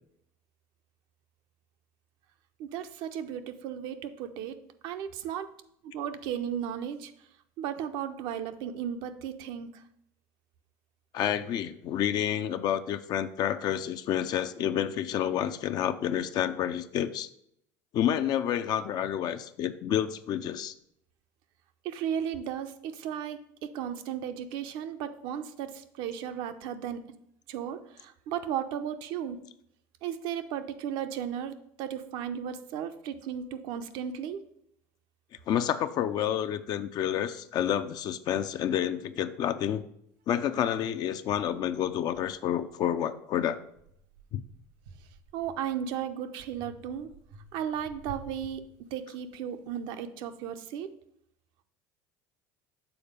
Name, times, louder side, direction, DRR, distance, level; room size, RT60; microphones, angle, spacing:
voice 1, 2.6-4.6 4.8-5.5 5.8-7.1 7.6-9.8 21.8-27.0 27.5-29.4 30.0-34.4 45.3-47.1 47.5-48.6 48.9-50.9, right 9 dB, 65° right, 9 dB, 0.6 m, -35 dB
voice 2, 11.1-17.3 17.9-20.7 35.5-39.8 40.3-43.6 44.3-44.4, left 10 dB, 50° left, 10 dB, 0.4 m, -29 dB
sound 1, 40.5-40.6 41.3-43.1 43.6-45.9 46.5-49.3, right 3 dB, 85° right, 1.6 m, -51 dB
7.0 x 4.0 x 5.1 m, 0.73 s
supercardioid pair, 90°, 9 cm